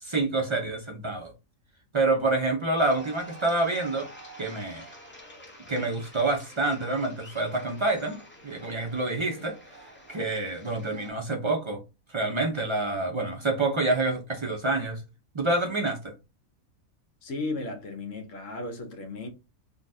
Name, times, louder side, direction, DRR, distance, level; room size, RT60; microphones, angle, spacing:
voice 1, 0.0-1.3 1.9-4.1 4.4-4.8 5.7-8.2 8.4-9.5 10.1-11.8 12.1-15.0 15.3-16.1, right 2 dB, 45° right, 0.4 m, -27 dB
sound 1, 2.8-11.1, right 1 dB, 10° left, 0.6 m, -48 dB
voice 2, 17.2-19.3, left 2 dB, 65° left, 1.2 m, -35 dB
3.9 x 2.3 x 2.6 m
omnidirectional pair, 1.5 m